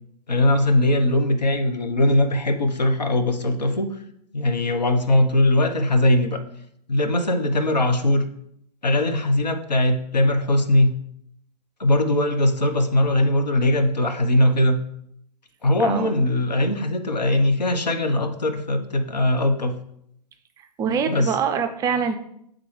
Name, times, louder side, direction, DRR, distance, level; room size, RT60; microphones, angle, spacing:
voice 1, 0.3-4.0 4.3-6.4 6.9-8.2 8.8-10.9 11.8-14.8 15.6-19.8 21.1-21.3, left 1 dB, 85° left, 6 dB, 0.8 m, -20 dB
voice 2, 15.8-16.1 20.6-22.2, right 6 dB, 15° right, 8 dB, 0.4 m, -24 dB
8.3 x 3.8 x 3.2 m, 0.73 s
figure-of-eight pair, 115°, 21 cm